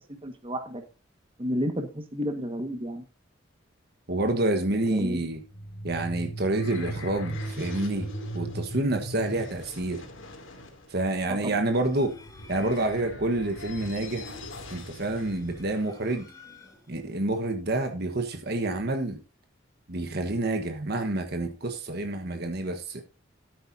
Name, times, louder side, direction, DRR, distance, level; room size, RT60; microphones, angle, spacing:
voice 1, 0.1-0.8 1.4-3.0 4.7-5.3 11.3-11.6, equal, 30° right, 1.6 m, -32 dB
voice 2, 4.1-5.4 5.8-8.1 8.3-10.0 10.9-12.2 12.5-14.4 14.7-16.2 16.9-19.2 19.9-23.0, right 2 dB, 55° right, 1.3 m, -28 dB
sound 1, 5.3-15.8, right 1 dB, 90° left, 2.7 m, -39 dB
sound 2, 11.6-13.2 15.0-17.1, left 3 dB, 20° left, 2.5 m, -52 dB
13.0 x 9.2 x 2.7 m
head